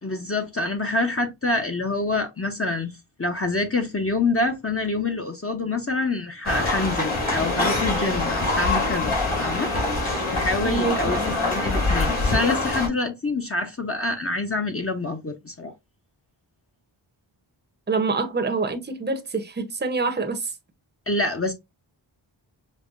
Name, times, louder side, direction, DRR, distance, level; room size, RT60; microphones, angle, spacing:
voice 1, 0.0-2.9 3.2-15.7 21.1-21.5, left 2 dB, 30° left, 0.8 m, -26 dB
sound 1, 6.4-12.9, left 2 dB, 80° left, 2.1 m, -24 dB
voice 2, 10.6-11.3 17.9-20.5, right 4 dB, 20° right, 0.8 m, -26 dB
5.4 x 2.1 x 2.5 m
cardioid pair, 50°, 49 cm